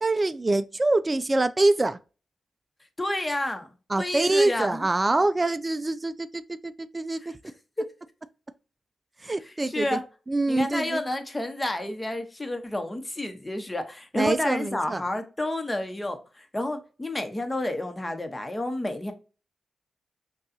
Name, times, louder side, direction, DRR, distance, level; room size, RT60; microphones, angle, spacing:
voice 1, 0.0-2.0 3.9-7.4 9.2-10.0 10.3-11.0 14.1-15.0, right 2 dB, 30° right, 0.3 m, -25 dB
voice 2, 3.0-3.7 4.0-4.9 7.2-7.3 7.8-7.9 9.7-10.0 10.5-19.1, left 1 dB, 20° left, 0.9 m, -30 dB
5.4 x 2.3 x 2.6 m
cardioid pair, 60°, 0 cm